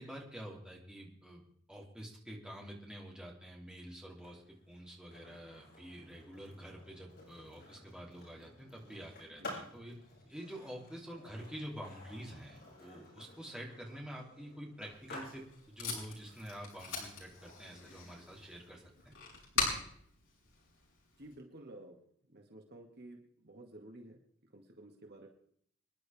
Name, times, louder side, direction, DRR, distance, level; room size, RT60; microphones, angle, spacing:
voice 1, 0.0-1.4 1.7-9.9 10.2-19.1, equal, 5° right, -3 dB, 3.2 m, -48 dB
Skateboard, 4.1-20.0, left 1 dB, 55° left, 7.4 m, -54 dB
Packing tape duct tape, 14.8-21.3, left 4 dB, 70° left, 6.5 m, -41 dB
voice 2, 19.5-19.9 21.2-24.2 24.5-25.3, right 1 dB, 50° right, 2 dB, 2.1 m, -53 dB
27.0 x 11.0 x 3.6 m, 0.64 s
head